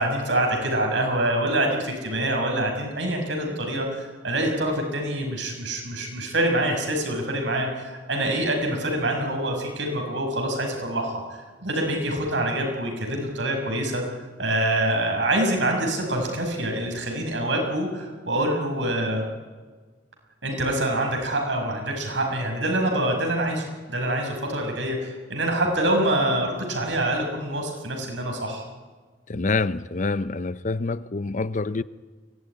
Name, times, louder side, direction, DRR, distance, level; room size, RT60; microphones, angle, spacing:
voice 1, 0.0-11.2 11.6-14.0 14.4-19.2 20.4-28.6, right 1 dB, 80° right, 6.0 m, -25 dB
voice 2, 29.3-31.8, left 3 dB, 40° left, 0.6 m, -26 dB
23.5 x 17.5 x 9.8 m
head